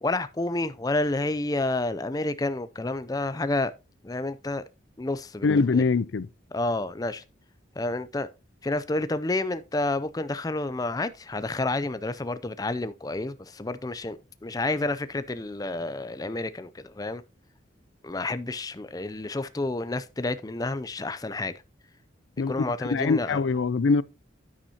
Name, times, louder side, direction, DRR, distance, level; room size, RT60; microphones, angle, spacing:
voice 1, 0.0-3.7 4.0-4.6 5.0-5.8 6.5-7.2 7.8-8.3 8.6-17.2 18.0-21.6 22.5-23.4, left 2 dB, 20° left, 0.4 m, -29 dB
voice 2, 5.4-6.3 22.4-22.5 22.9-24.0, left 4 dB, 75° left, 0.5 m, -23 dB
9.9 x 9.0 x 2.8 m
head